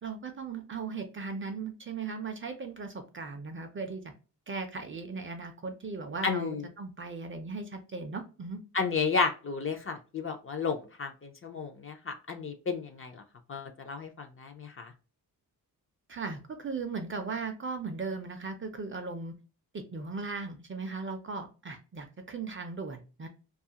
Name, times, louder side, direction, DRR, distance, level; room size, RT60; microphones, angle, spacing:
voice 1, 0.0-4.0 4.5-8.6 16.1-19.3 19.7-23.3, right 4 dB, 35° right, 6 dB, 0.4 m, -37 dB
voice 2, 6.2-6.6 8.7-13.2 13.5-14.9, left 5 dB, 35° left, 5 dB, 0.4 m, -32 dB
2.7 x 2.3 x 2.7 m, 0.33 s
wide cardioid pair, 150°, 39 cm